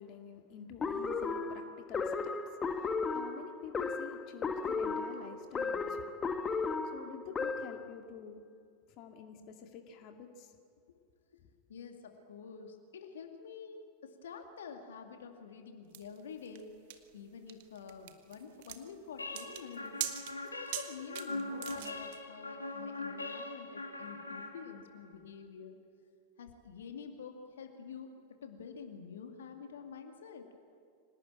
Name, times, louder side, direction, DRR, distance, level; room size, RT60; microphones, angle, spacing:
voice 1, 0.0-6.1 6.9-8.4 8.9-10.6, left 7 dB, 40° left, 4 dB, 2.2 m, -49 dB
sound 1, 0.8-7.9, left 4 dB, 20° left, 1.4 m, -35 dB
voice 2, 11.7-16.7 17.1-20.0 20.4-25.8 26.4-28.1 28.4-30.5, left 6 dB, 65° left, 4 dB, 2.3 m, -48 dB
sound 2, 15.9-22.2, right 13 dB, 50° right, 1.6 m, -43 dB
sound 3, 19.2-25.1, left 2 dB, 80° left, 2.7 m, -42 dB
25.5 x 18.5 x 8.8 m, 2.2 s
figure-of-eight pair, 90°, 0 cm